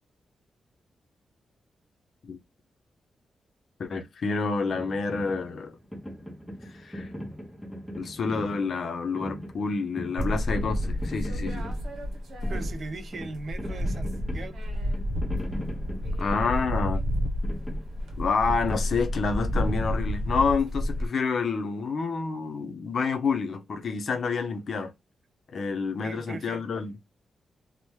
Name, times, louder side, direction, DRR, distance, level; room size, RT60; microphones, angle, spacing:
voice 1, 3.8-5.8 6.8-7.1 7.9-11.7 16.2-17.0 18.2-24.9 25.5-27.0, left 4 dB, 55° left, 0.5 m, -28 dB
sound 1, 4.7-20.4, equal, 5° left, 0.6 m, -40 dB
sound 2, 10.2-13.0 13.3-21.1, equal, 70° right, 0.8 m, -30 dB
voice 2, 12.5-14.1 14.3-14.5 26.0-26.6, right 3 dB, 45° right, 0.4 m, -38 dB
2.9 x 2.0 x 3.0 m
wide cardioid pair, 155°, 0 cm